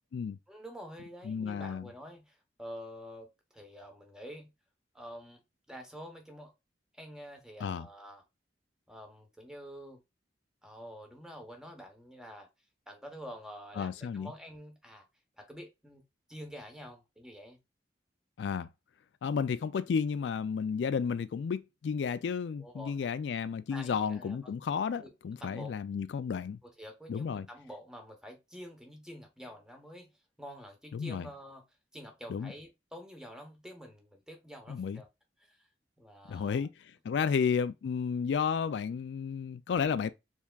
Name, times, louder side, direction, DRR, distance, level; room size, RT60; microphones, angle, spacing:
voice 1, 0.5-4.5 4.9-5.4 5.7-6.5 6.9-8.2 8.9-10.0 10.6-12.5 12.9-15.1 15.4-16.0 16.3-17.6 22.6-23.0 23.7-24.5 25.0-25.1 25.4-25.7 26.6-30.1 30.4-31.6 31.9-35.1 35.4-35.7 36.0-36.7, equal, 5° right, 1.0 m, -48 dB
voice 2, 1.2-1.9 7.6-7.9 13.8-14.3 18.4-18.7 19.2-26.6 27.1-27.5 30.9-31.3 32.3-32.5 34.7-35.0 36.3-40.1, left 6 dB, 80° left, 0.3 m, -32 dB
4.5 x 3.5 x 2.3 m
head